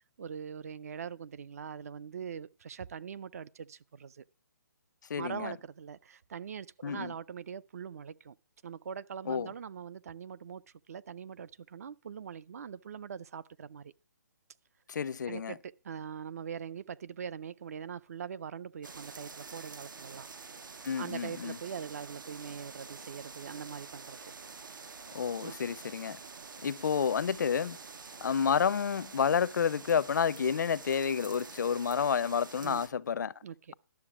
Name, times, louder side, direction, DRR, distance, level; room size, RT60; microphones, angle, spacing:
voice 1, 0.2-4.2 5.2-8.4 8.6-13.9 15.3-20.3 21.0-24.2 25.4-25.5 32.6-32.8 33.4-33.7, right 7 dB, 50° right, 0.4 m, -42 dB
voice 2, 5.1-5.6 6.8-7.1 9.2-9.5 14.9-15.6 20.8-21.6 25.1-26.2 26.6-27.8 28.2-33.3, left 7 dB, 65° left, 0.5 m, -30 dB
sound 1, 18.8-32.9, right 5 dB, 80° right, 1.0 m, -47 dB
11.5 x 6.9 x 5.9 m
hypercardioid pair, 165°, 10 cm